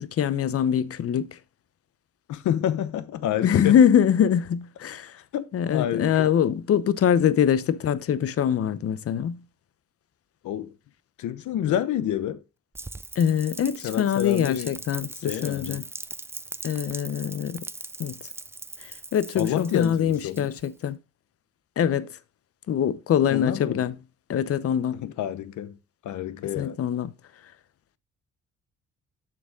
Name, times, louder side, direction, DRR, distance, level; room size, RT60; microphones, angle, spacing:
voice 1, 0.0-1.4 3.4-5.2 5.5-9.4 13.2-15.8 16.6-17.6 18.0-18.1 18.8-21.0 21.8-22.2 22.7-23.9 24.3-25.0 26.4-27.1, left 9 dB, 50° left, 0.7 m, -23 dB
voice 2, 2.3-3.8 5.3-6.3 10.4-10.7 11.2-12.4 13.8-14.7 15.2-15.8 19.4-20.5 23.3-23.8 24.9-25.8 26.0-26.8, left 11 dB, 75° left, 0.9 m, -28 dB
Rain, 12.7-20.8, right 2 dB, 10° right, 0.3 m, -40 dB
7.5 x 6.5 x 3.6 m
cardioid pair, 90°, 30 cm